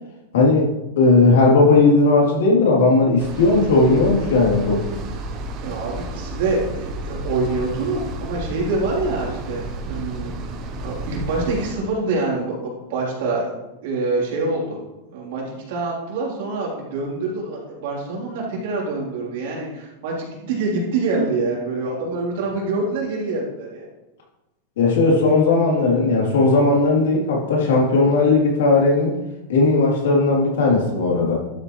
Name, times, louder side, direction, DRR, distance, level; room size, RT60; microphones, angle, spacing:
voice 1, 0.3-0.6 1.0-4.8 24.8-29.1 29.5-31.4, left 3 dB, 85° left, -2 dB, 3.2 m, -16 dB
sound 1, 3.2-11.7, right 2 dB, 30° right, 0.9 m, -31 dB
voice 2, 5.6-10.4 10.8-13.5 13.8-14.8 15.1-23.9, right 3 dB, 60° right, -4 dB, 3.5 m, -25 dB
12.0 x 7.4 x 3.2 m, 0.99 s
supercardioid pair, 165°, 0 cm